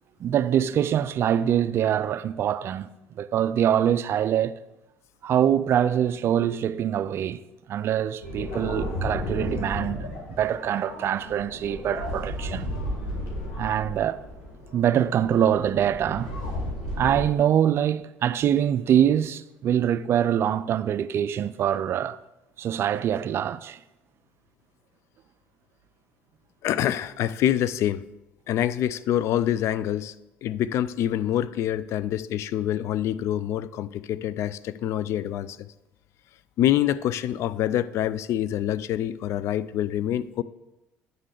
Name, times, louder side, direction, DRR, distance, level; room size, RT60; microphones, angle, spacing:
voice 1, 0.2-2.9 3.2-4.6 5.2-7.4 7.7-10.0 10.3-12.8 13.6-14.2 14.7-16.3 17.0-22.2 22.6-23.8, right 10 dB, 55° right, 0.4 m, -24 dB
sound 1, 8.2-17.2, left 1 dB, 85° left, 2.2 m, -33 dB
voice 2, 26.6-28.0 28.5-30.1 30.4-35.6 36.6-40.4, left 11 dB, 65° left, 0.4 m, -26 dB
9.2 x 3.8 x 6.6 m
supercardioid pair, 75°, 5 cm